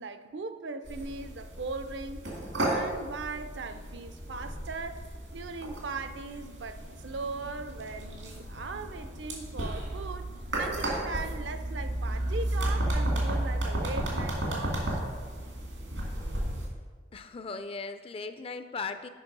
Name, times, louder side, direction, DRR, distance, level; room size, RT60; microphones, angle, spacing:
voice 1, 0.0-2.3 2.6-5.0 5.3-10.3 10.6-15.1, right 4 dB, 70° right, 10 dB, 0.5 m, -39 dB
sound 1, 0.9-16.7, right 1 dB, 90° right, 2.3 m, -33 dB
voice 2, 17.1-19.1, left 4 dB, 30° left, 10 dB, 0.4 m, -37 dB
8.2 x 5.3 x 5.3 m, 1.5 s
head